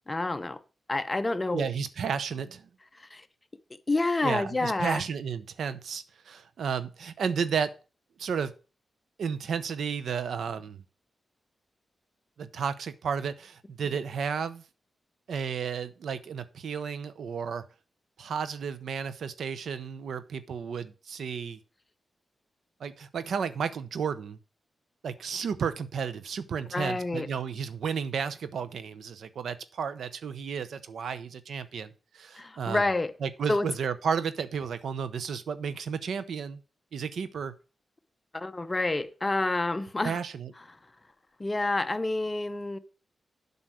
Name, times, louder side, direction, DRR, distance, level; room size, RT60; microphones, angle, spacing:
voice 1, 0.1-0.6 0.9-1.7 2.9-3.2 3.9-5.0 26.7-27.3 32.4-33.1 33.5-33.7 38.3-40.2 41.4-42.8, left 2 dB, 25° left, 0.7 m, -28 dB
voice 2, 1.5-2.7 4.2-7.7 8.2-8.5 9.2-10.8 12.4-14.6 15.3-17.6 18.2-21.6 22.8-24.4 25.0-32.8 33.2-36.6 36.9-37.5 40.0-40.5, right 6 dB, 85° right, 0.7 m, -32 dB
7.8 x 5.5 x 6.1 m
cardioid pair, 90°, 0 cm